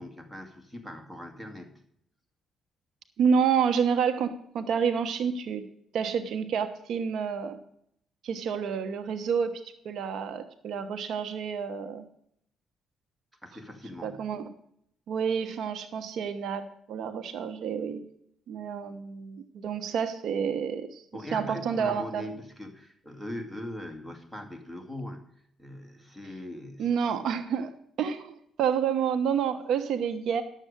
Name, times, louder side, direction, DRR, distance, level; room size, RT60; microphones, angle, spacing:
voice 1, 0.0-1.7 13.4-14.3 19.9-20.0 21.1-26.9, left 1 dB, 5° right, 4 dB, 2.3 m, -41 dB
voice 2, 3.2-5.6 5.9-7.6 8.2-12.0 14.0-14.5 15.1-18.0 18.5-21.0 21.3-22.3 26.8-27.7 28.0-30.4, right 7 dB, 75° right, 9 dB, 1.0 m, -29 dB
11.5 x 7.5 x 6.7 m, 0.72 s
cardioid pair, 90°, 0 cm